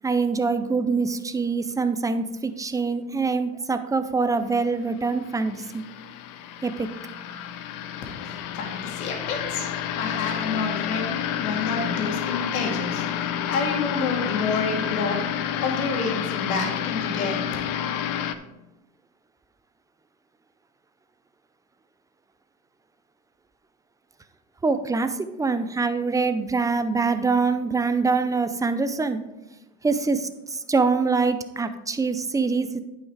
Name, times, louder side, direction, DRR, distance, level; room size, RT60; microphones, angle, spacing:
voice 1, 0.0-5.8 6.6-6.9 24.6-25.1 25.4-29.2 29.8-32.8, right 4 dB, 10° right, 10 dB, 0.5 m, -24 dB
sound 1, 4.8-18.3, left 10 dB, 50° left, 0.8 m, -30 dB
voice 2, 8.1-11.1 11.4-15.3 15.6-17.5, left 4 dB, 80° left, 1 dB, 2.4 m, -29 dB
9.5 x 5.6 x 4.7 m, 1.0 s
hypercardioid pair, 95°, 43 cm